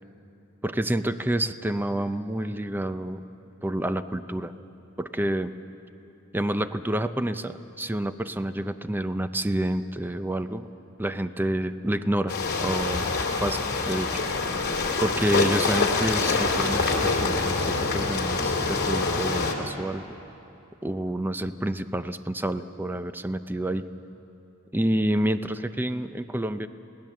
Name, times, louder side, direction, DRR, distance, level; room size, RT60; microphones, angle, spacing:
voice 1, 0.6-3.2 3.6-4.5 5.0-5.5 6.3-10.7 11.0-13.1 13.4-14.6 15.0-20.0 20.8-23.8 24.7-26.7, right 1 dB, 10° right, 11 dB, 0.6 m, -28 dB
sound 1, 12.3-19.5, left 3 dB, 50° left, 2.5 m, -25 dB
27.5 x 18.0 x 7.6 m, 2.9 s
head